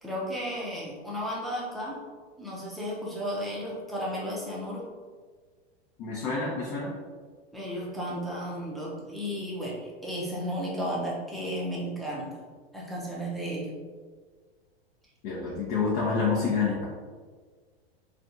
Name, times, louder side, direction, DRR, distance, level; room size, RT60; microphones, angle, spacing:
voice 1, 0.0-2.0 2.4-4.9 7.5-12.4 12.7-13.7, equal, ahead, -6 dB, 0.6 m, -34 dB
voice 2, 6.0-6.9 15.2-16.8, left 4 dB, 45° left, -5 dB, 0.7 m, -28 dB
3.3 x 2.4 x 2.7 m, 1.5 s
supercardioid pair, 130°, 31 cm